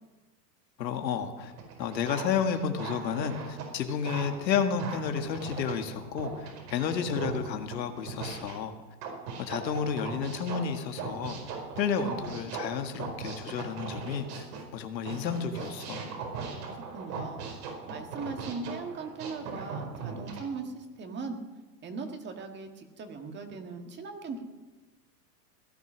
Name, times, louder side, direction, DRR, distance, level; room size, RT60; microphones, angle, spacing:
voice 1, 0.8-1.5 1.8-8.7 9.4-11.4 11.8-14.5 14.7-16.0, left 7 dB, 90° left, 6 dB, 1.9 m, -31 dB
sound 1, 1.5-8.6 9.0-14.6 15.1-20.4, right 5 dB, 70° right, 4.8 m, -39 dB
voice 2, 16.6-17.4 17.9-21.4 21.8-24.4, right 4 dB, 20° right, 5 dB, 1.7 m, -39 dB
17.0 x 11.0 x 6.2 m, 1.2 s
supercardioid pair, 140°, 49 cm